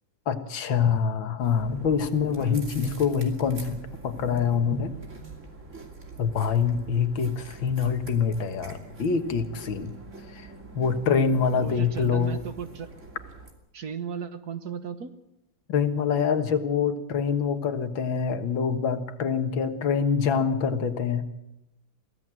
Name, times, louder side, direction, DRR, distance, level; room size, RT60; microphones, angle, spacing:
voice 1, 0.3-3.8 4.0-4.9 6.2-9.9 10.3-10.5 10.7-12.4 15.7-21.2, left 6 dB, 75° left, 8 dB, 2.2 m, -25 dB
sound 1, 1.4-13.5, right 3 dB, 35° right, 3.1 m, -44 dB
voice 2, 11.6-12.9 13.7-15.1, right 7 dB, 55° right, 10 dB, 1.6 m, -35 dB
23.0 x 16.0 x 7.7 m, 0.89 s
omnidirectional pair, 2.1 m